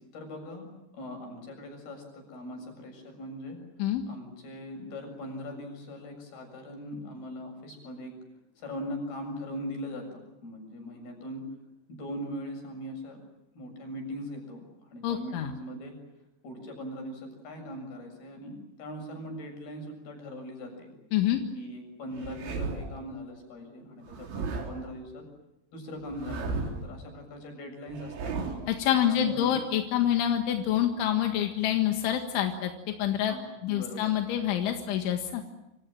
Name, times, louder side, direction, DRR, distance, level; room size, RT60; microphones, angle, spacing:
voice 1, 0.1-0.7 0.9-3.6 4.1-8.1 8.6-11.4 11.9-13.2 13.5-15.9 16.4-20.9 21.5-25.3 25.7-28.3 29.1-29.6 33.3-34.1, equal, 55° left, 4 dB, 9.1 m, -40 dB
voice 2, 15.0-15.5 21.1-21.4 28.7-32.7 33.0-33.3 33.6-35.4, left 11 dB, 90° left, 5 dB, 4.1 m, -27 dB
sound 1, 22.1-23.0 24.1-24.9 26.1-26.9 27.9-28.8, right 4 dB, 75° right, 6.3 m, -35 dB
28.0 x 27.5 x 7.6 m, 0.90 s
omnidirectional pair, 5.3 m